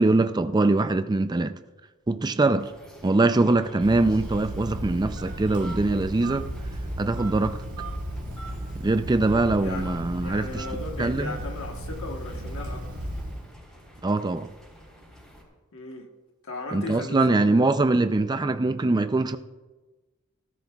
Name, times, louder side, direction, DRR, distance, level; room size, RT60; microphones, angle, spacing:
voice 1, 0.0-1.6 2.1-2.7 3.0-6.5 7.0-7.6 8.8-10.6 11.0-11.3 14.0-14.5 16.7-19.4, right 2 dB, 20° right, 0.4 m, -23 dB
sound 1, 2.6-15.4, equal, ahead, 3.5 m, -51 dB
Telephone, 3.8-13.5, right 1 dB, 80° right, 1.9 m, -34 dB
voice 2, 10.2-13.1 15.7-16.1 16.4-17.6, left 2 dB, 60° left, 1.2 m, -37 dB
17.0 x 14.0 x 2.3 m
head